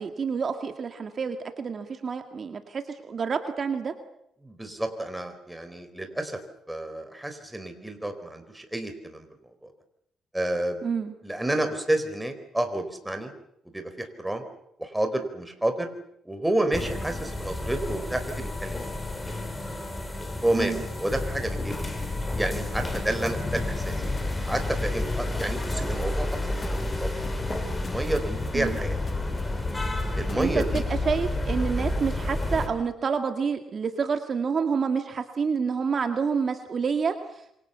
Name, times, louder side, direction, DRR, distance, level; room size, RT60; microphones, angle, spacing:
voice 1, 0.0-3.9 10.8-11.1 20.5-20.8 28.5-28.8 30.4-37.6, right 5 dB, 45° right, 6 dB, 2.1 m, -28 dB
voice 2, 4.4-6.4 6.7-9.3 9.6-9.7 10.3-10.8 11.2-13.3 13.7-14.4 14.8-15.9 16.2-18.8 20.4-21.8 22.3-24.0 24.4-26.3 26.6-27.1 27.7-29.0 30.2-30.8 31.7-31.9, right 1 dB, 10° right, 7 dB, 4.3 m, -30 dB
sound 1, 16.7-32.7, left 1 dB, 15° left, 5.3 m, -31 dB
sound 2, 21.1-30.9, left 4 dB, 35° left, 1.6 m, -35 dB
27.5 x 24.5 x 7.0 m, 0.79 s
cardioid pair, 90°, 0 cm